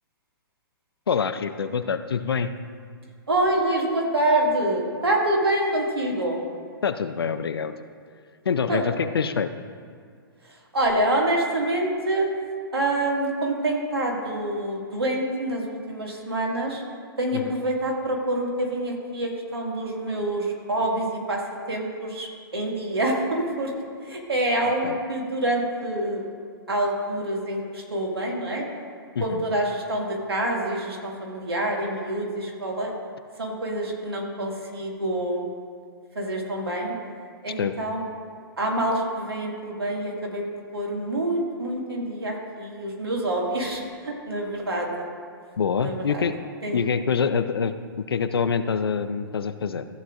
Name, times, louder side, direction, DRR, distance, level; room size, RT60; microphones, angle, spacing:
voice 1, 1.1-2.5 6.8-7.7 8.4-9.5 17.3-17.5 24.8-25.0 29.1-29.4 37.6-37.7 45.6-46.3 46.7-49.8, left 6 dB, 80° left, 11 dB, 0.6 m, -25 dB
voice 2, 3.3-6.4 8.7-8.8 10.7-12.3 12.7-16.8 17.2-23.7 24.0-26.3 26.7-28.6 29.2-32.9 33.4-35.4 36.2-36.9 37.4-38.0 38.6-40.4 40.7-45.1 45.8-46.2 46.6-46.8, right 1 dB, 90° right, -1 dB, 2.1 m, -26 dB
14.5 x 8.1 x 2.5 m, 2.1 s
hypercardioid pair, 120°, 12 cm